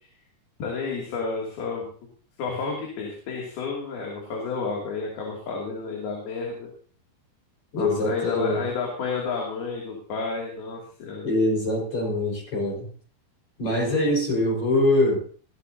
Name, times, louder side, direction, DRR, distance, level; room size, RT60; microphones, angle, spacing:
voice 1, 0.6-1.9 2.4-6.7 7.8-11.3, left 4 dB, 75° left, -1 dB, 4.6 m, -31 dB
voice 2, 7.7-8.6 11.2-12.9 13.6-15.2, left 1 dB, 45° left, -1 dB, 6.1 m, -23 dB
19.5 x 14.5 x 2.8 m, 0.42 s
omnidirectional pair, 4.5 m